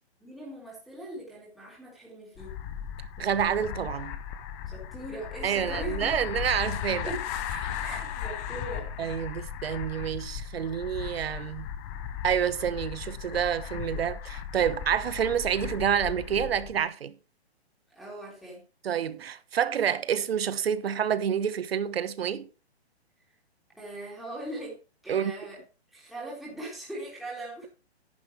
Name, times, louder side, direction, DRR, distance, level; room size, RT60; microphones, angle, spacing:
voice 1, 0.2-2.6 4.7-6.2 7.0-7.3 7.8-8.9 17.9-18.6 23.7-25.6 25.9-27.7, right 1 dB, ahead, 3.5 m, -40 dB
sound 1, 2.4-16.8, left 9 dB, 15° left, 0.7 m, -36 dB
voice 2, 3.2-4.2 5.4-7.1 7.6-7.8 9.0-11.7 12.2-17.1 18.8-22.5 25.1-25.3, right 8 dB, 65° right, 1.2 m, -28 dB
10.5 x 10.0 x 3.3 m
hypercardioid pair, 155°, 32 cm